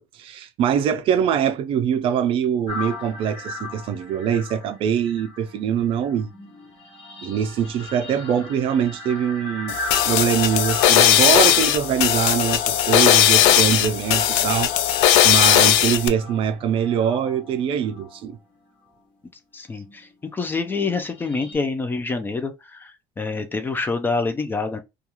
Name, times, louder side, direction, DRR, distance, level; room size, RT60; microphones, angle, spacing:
voice 1, 0.0-6.3 7.2-9.8 10.0-18.4, right 8 dB, 50° right, 0.4 m, -23 dB
sound 1, 2.7-19.2 19.8-21.6, left 3 dB, 45° left, 1.2 m, -39 dB
sound 2, 9.7-16.1, left 11 dB, 85° left, 0.4 m, -17 dB
voice 2, 19.5-24.8, left 4 dB, 15° left, 0.4 m, -27 dB
2.3 x 2.3 x 2.9 m
cardioid pair, 130°, 12 cm